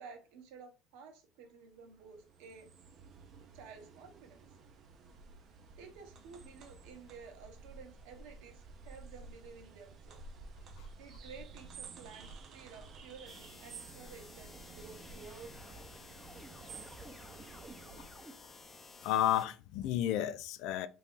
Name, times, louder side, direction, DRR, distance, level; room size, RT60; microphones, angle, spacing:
voice 1, 0.0-2.7 3.5-4.5 5.8-10.2 11.0-15.8, right 5 dB, 75° right, 0.9 m, -53 dB
sound 1, 1.6-18.1, right 4 dB, 50° right, 0.6 m, -53 dB
sound 2, 12.4-19.4, right 1 dB, 10° right, 0.8 m, -56 dB
sound 3, 13.3-19.5, left 4 dB, 25° left, 0.6 m, -54 dB
voice 2, 19.0-20.9, left 12 dB, 70° left, 0.3 m, -32 dB
2.9 x 2.6 x 3.6 m
supercardioid pair, 90°, 0 cm